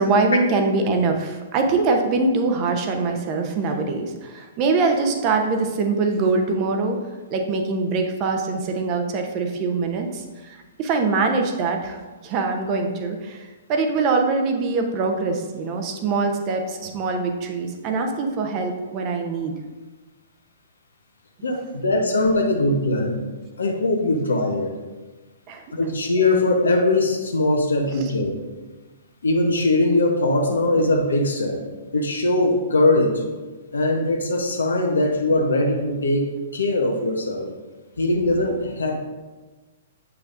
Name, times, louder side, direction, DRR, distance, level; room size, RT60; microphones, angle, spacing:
voice 1, 0.0-7.0 7.3-19.5 25.5-25.6, right 3 dB, 35° right, 4 dB, 0.9 m, -23 dB
voice 2, 21.4-23.2 23.6-24.8 25.7-28.4 29.2-31.6 31.9-33.2 33.7-37.5 38.0-39.0, left 2 dB, 75° left, 2 dB, 1.0 m, -21 dB
8.1 x 5.7 x 2.6 m, 1.3 s
figure-of-eight pair, 115°, 0 cm